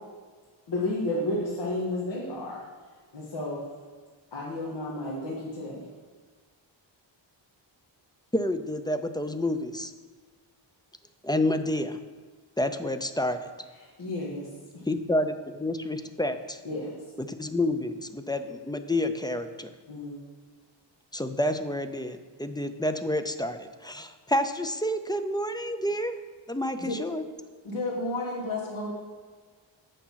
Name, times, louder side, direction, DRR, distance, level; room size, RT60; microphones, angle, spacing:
voice 1, 0.7-2.6 3.1-3.6 4.3-5.8 14.0-14.5 16.6-16.9 19.9-20.2, left 1 dB, 60° left, -6 dB, 2.0 m, -31 dB
voice 2, 8.3-9.9 11.2-12.0 12.6-13.5 14.9-16.6 17.2-19.7 21.1-26.1 26.5-27.2, left 1 dB, 10° left, 8 dB, 0.4 m, -29 dB
voice 3, 27.6-28.9, left 2 dB, 80° left, -4 dB, 3.1 m, -31 dB
8.6 x 6.7 x 5.7 m, 1.5 s
wide cardioid pair, 120°, 47 cm